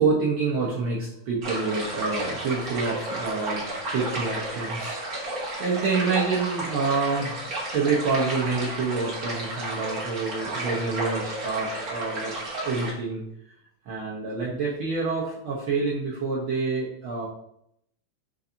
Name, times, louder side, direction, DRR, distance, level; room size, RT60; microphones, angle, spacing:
voice 1, 0.0-3.6 3.9-7.4 7.7-12.3 12.6-13.2 13.8-17.3, right 4 dB, 75° right, -5 dB, 1.2 m, -27 dB
sound 1, 1.4-12.9, right 1 dB, 50° right, 1.0 m, -32 dB
6.9 x 2.6 x 2.6 m, 0.73 s
omnidirectional pair, 3.5 m